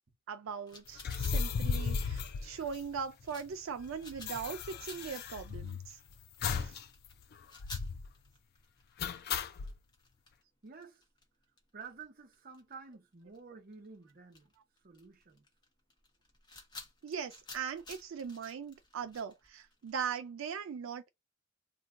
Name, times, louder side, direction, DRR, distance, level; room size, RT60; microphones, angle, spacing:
voice 1, 0.3-6.0 6.6-6.8 17.0-21.1, right 6 dB, 85° right, 0.4 m, -40 dB
sound 1, 0.7-12.9 13.2-13.4 13.7-19.9, left 3 dB, 20° left, 0.8 m, -53 dB
sound 2, 1.0-3.2 3.5-3.6 3.8-5.9 6.4-6.8 7.1-7.2 7.6-8.1 9.0-9.7, left 5 dB, 50° left, 0.4 m, -35 dB
voice 2, 10.6-11.0 11.7-14.5 14.8-15.5, right 5 dB, 45° right, 0.8 m, -51 dB
2.6 x 2.2 x 3.6 m
head